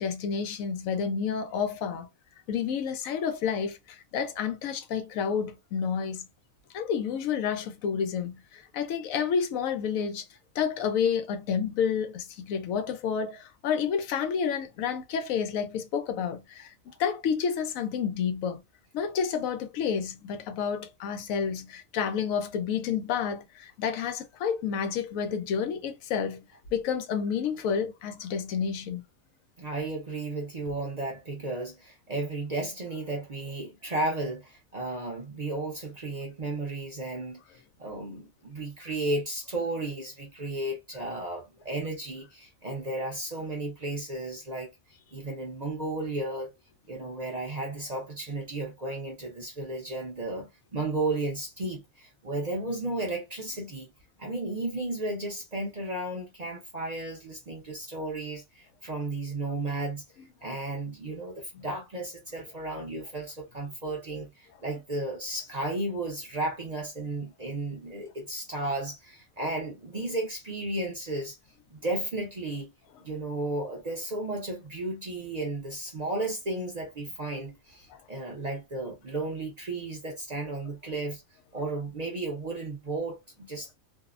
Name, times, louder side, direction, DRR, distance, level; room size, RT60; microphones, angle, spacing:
voice 1, 0.0-2.1 2.5-6.3 6.7-10.3 10.6-18.6 18.9-29.0 61.5-61.7 77.9-78.0, left 7 dB, 90° left, 1.0 m, -30 dB
voice 2, 29.6-44.7 45.1-46.5 46.9-53.9 54.2-60.0 60.4-71.4 71.7-72.7 73.0-81.2 81.5-83.7, right 2 dB, 45° right, 0.6 m, -34 dB
2.7 x 2.0 x 2.4 m
omnidirectional pair, 1.4 m